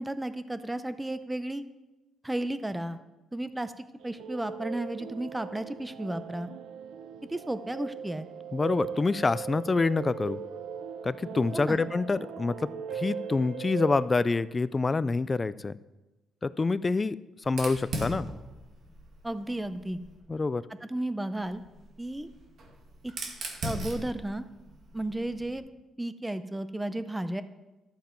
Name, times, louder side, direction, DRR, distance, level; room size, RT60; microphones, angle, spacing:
voice 1, 0.0-1.6 2.2-3.0 3.3-6.5 7.3-8.3 11.5-11.8 19.2-20.0 20.9-21.6 22.0-22.3 23.0-23.1 23.6-24.5 24.9-25.7 26.0-27.4, right 1 dB, 10° right, 12 dB, 0.7 m, -33 dB
sound 1, 4.0-14.1, right 7 dB, 85° right, 0.5 m, -39 dB
voice 2, 8.5-10.4 11.0-15.7 16.4-18.3 20.3-20.7, left 3 dB, 25° left, 17 dB, 0.4 m, -27 dB
Fire, 17.4-20.2 21.4-25.6, right 1 dB, 65° right, 2.0 m, -40 dB
12.5 x 7.3 x 4.5 m, 1.1 s
cardioid pair, 90°, 0 cm